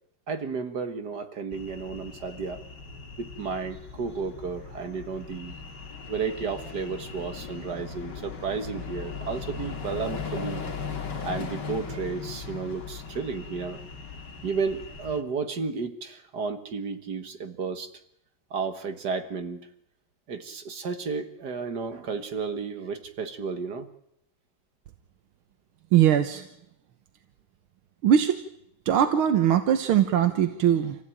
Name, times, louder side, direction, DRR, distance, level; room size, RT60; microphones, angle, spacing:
voice 1, 0.3-2.6 3.2-5.6 6.1-10.6 11.2-13.8 14.4-17.9 18.5-19.7 20.3-23.9, right 5 dB, 55° right, 9 dB, 2.0 m, -32 dB
sound 1, 1.5-15.2, left 5 dB, 55° left, 2.8 m, -38 dB
voice 2, 25.9-26.5 28.0-28.4 28.9-31.0, right 10 dB, 90° right, 8 dB, 2.0 m, -21 dB
27.0 x 15.5 x 9.0 m, 0.77 s
omnidirectional pair, 2.2 m